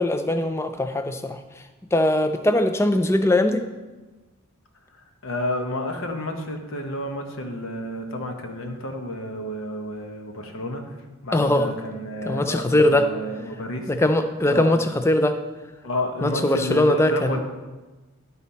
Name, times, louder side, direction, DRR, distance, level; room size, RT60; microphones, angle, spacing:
voice 1, 0.0-1.4 1.9-3.6 11.3-11.7 12.3-13.1 13.9-15.4 16.2-17.4, left 1 dB, 10° left, 8 dB, 0.3 m, -21 dB
voice 2, 4.9-13.9 14.5-14.8 15.8-17.4, left 1 dB, 60° left, 3 dB, 1.0 m, -30 dB
12.0 x 4.1 x 4.2 m, 1.2 s
head